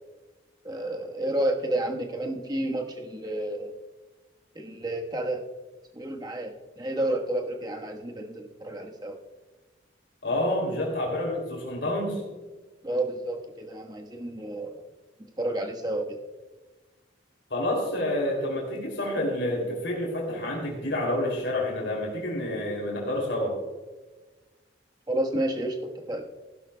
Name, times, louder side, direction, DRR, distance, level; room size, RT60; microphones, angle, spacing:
voice 1, 0.6-3.7 4.5-5.4 5.9-9.2 12.8-14.8 15.4-16.0 25.1-26.3, right 1 dB, 20° right, 2 dB, 1.3 m, -30 dB
voice 2, 10.2-12.2 17.5-23.5, left 1 dB, 75° left, -1 dB, 2.8 m, -28 dB
15.5 x 11.5 x 2.2 m, 1.2 s
head